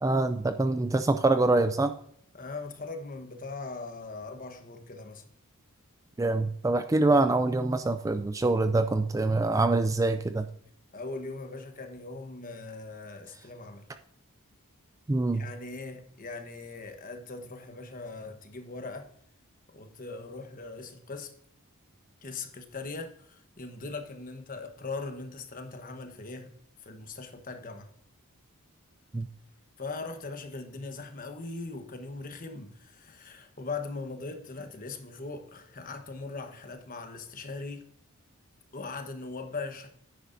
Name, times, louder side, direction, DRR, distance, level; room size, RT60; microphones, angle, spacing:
voice 1, 0.0-1.9 6.2-10.5 15.1-15.5 29.1-29.3, right 2 dB, 15° right, 0.3 m, -25 dB
voice 2, 2.3-5.2 10.9-13.8 15.3-19.1 19.7-21.3 22.2-26.5 26.8-27.9 29.8-37.9 38.7-39.9, left 3 dB, 40° left, 1.1 m, -40 dB
10.0 x 9.5 x 2.6 m
head